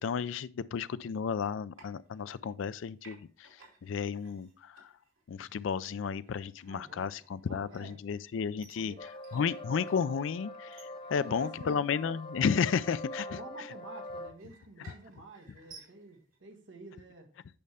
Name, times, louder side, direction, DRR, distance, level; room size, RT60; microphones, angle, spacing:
voice 1, 0.0-4.9 5.3-8.9 9.3-13.4, left 6 dB, 70° left, 0.4 m, -33 dB
sound 1, 1.7-2.7 3.0-16.4, right 4 dB, 85° right, 2.7 m, -59 dB
voice 2, 6.7-7.2 7.4-8.0 8.7-9.1 11.1-11.8 13.3-17.3, right 2 dB, 65° right, 1.4 m, -49 dB
sound 2, 9.0-14.3, left 1 dB, 25° left, 0.6 m, -44 dB
8.7 x 5.4 x 3.4 m
head